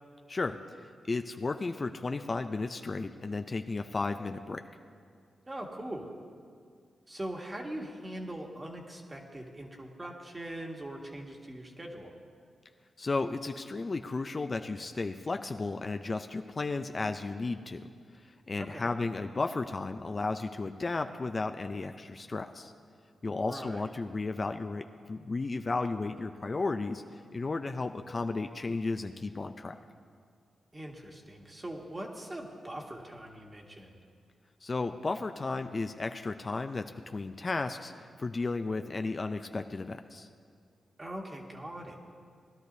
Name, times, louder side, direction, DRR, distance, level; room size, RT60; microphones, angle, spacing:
voice 1, 0.3-4.6 13.0-17.8 18.5-22.7 23.2-29.8 34.6-40.3, left 3 dB, 40° left, 7 dB, 0.5 m, -34 dB
voice 2, 5.5-6.1 7.1-12.1 18.6-18.9 23.2-23.8 30.7-34.0 41.0-42.0, right 1 dB, 25° right, 0 dB, 1.7 m, -41 dB
19.5 x 11.5 x 2.7 m, 2.2 s
cardioid pair, 65°, 0 cm